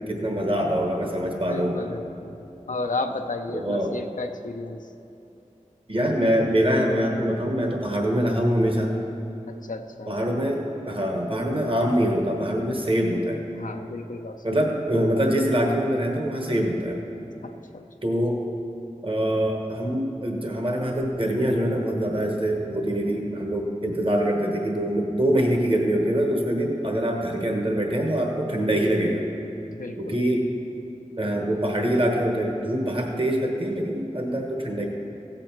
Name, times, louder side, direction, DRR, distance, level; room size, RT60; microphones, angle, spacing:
voice 1, 0.0-1.8 3.5-4.0 5.9-9.0 10.1-13.4 14.4-17.1 18.0-18.4 19.0-29.2 30.0-30.5 31.2-34.9, equal, 45° right, 1 dB, 1.3 m, -24 dB
voice 2, 1.5-2.4 2.7-4.9 9.5-10.2 13.5-14.4 17.4-17.8 29.7-30.2, left 3 dB, 85° left, 4 dB, 0.6 m, -33 dB
16.0 x 7.7 x 4.5 m, 2.8 s
wide cardioid pair, 45°, 13 cm